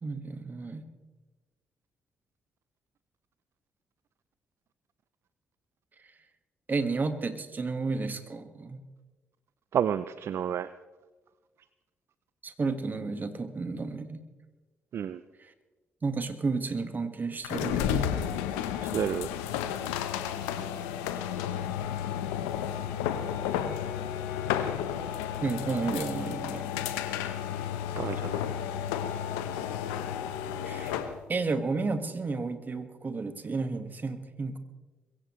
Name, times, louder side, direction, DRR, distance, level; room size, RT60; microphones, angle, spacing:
voice 1, 0.0-0.8 6.7-8.8 12.4-14.2 15.4-15.5 16.0-18.1 25.4-26.9 30.6-31.0 31.3-34.6, right 4 dB, 40° right, 9 dB, 1.7 m, -32 dB
voice 2, 9.7-10.7 14.9-15.2 18.8-19.3 28.0-28.4, right 9 dB, 60° right, 15 dB, 0.5 m, -30 dB
sound 1, 17.4-31.2, left 10 dB, 85° left, 0.9 m, -32 dB
22.0 x 16.5 x 3.2 m, 1.2 s
hypercardioid pair, 45°, 5 cm